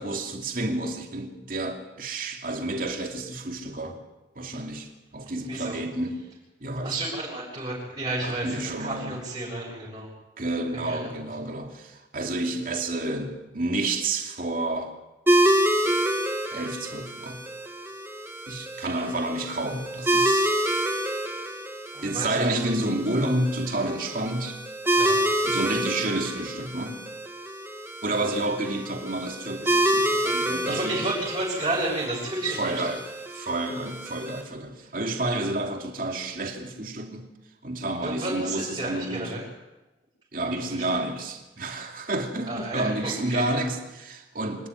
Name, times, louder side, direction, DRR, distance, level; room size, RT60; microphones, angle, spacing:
voice 1, 0.0-4.0 4.4-6.2 6.6-7.0 8.2-9.2 10.4-14.9 16.5-17.4 18.5-20.6 22.0-24.6 25.4-27.0 28.0-31.1 32.6-33.0 33.3-37.3 37.6-39.3 40.3-44.7, right 2 dB, 50° right, 3 dB, 2.8 m, -30 dB
voice 2, 5.5-5.8 6.8-10.1 10.7-11.2 18.7-18.9 21.9-22.7 24.9-25.2 28.2-28.3 30.4-32.9 38.0-39.4 40.4-40.9 42.4-43.4, right 2 dB, 30° right, -7 dB, 6.9 m, -32 dB
sound 1, 15.3-34.4, right 1 dB, 15° right, 2.1 m, -28 dB
25.5 x 13.0 x 9.8 m, 1.0 s
head